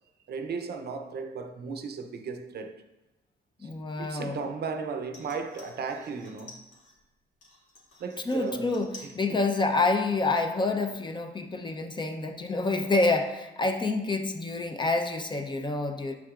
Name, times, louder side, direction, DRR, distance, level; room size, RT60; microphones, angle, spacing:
voice 1, 0.3-2.8 3.6-3.7 4.0-6.6 8.0-8.8 9.0-9.4, right 5 dB, 55° right, 0.6 m, -35 dB
voice 2, 3.6-4.4 8.3-16.1, left 3 dB, 25° left, 0.7 m, -28 dB
sound 1, 5.0-7.0 7.4-9.2 9.5-10.1 10.4-10.5, left 2 dB, 70° left, 1.8 m, -51 dB
6.9 x 5.9 x 2.5 m
cardioid pair, 90°, 20 cm